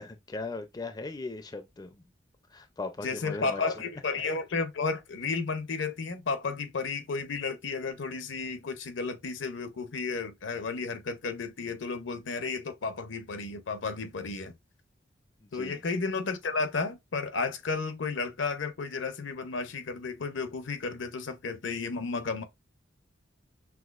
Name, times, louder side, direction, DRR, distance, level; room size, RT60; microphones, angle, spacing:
voice 1, 0.0-2.1 2.5-3.6 15.4-15.8, left 3 dB, 20° left, 0.4 m, -38 dB
voice 2, 3.0-14.5 15.5-22.4, left 4 dB, 75° left, 0.7 m, -33 dB
6.0 x 2.7 x 2.3 m
head